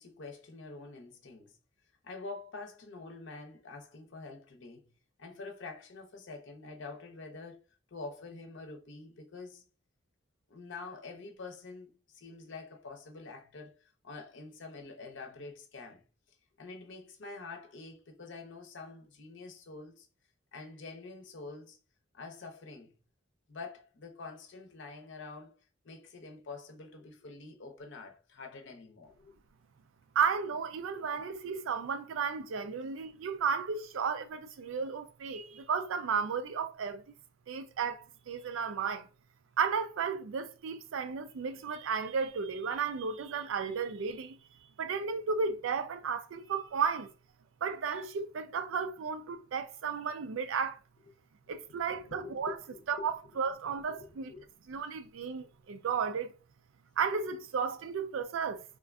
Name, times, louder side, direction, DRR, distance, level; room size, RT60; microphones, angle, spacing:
voice 1, 0.0-1.5 2.0-4.9 5.2-7.6 7.9-9.6 10.5-16.0 16.6-20.1 20.5-21.8 22.1-22.9 23.5-25.5 25.8-29.3 51.5-51.6 52.1-53.1 53.9-54.5, left 3 dB, 65° left, 0.7 m, -46 dB
voice 2, 30.2-37.0 37.5-39.1 39.6-44.4 44.8-47.1 47.6-50.8 51.5-52.5 52.9-54.3 54.7-56.3 57.0-58.6, right 6 dB, 80° right, 0.4 m, -33 dB
3.7 x 2.4 x 2.2 m
head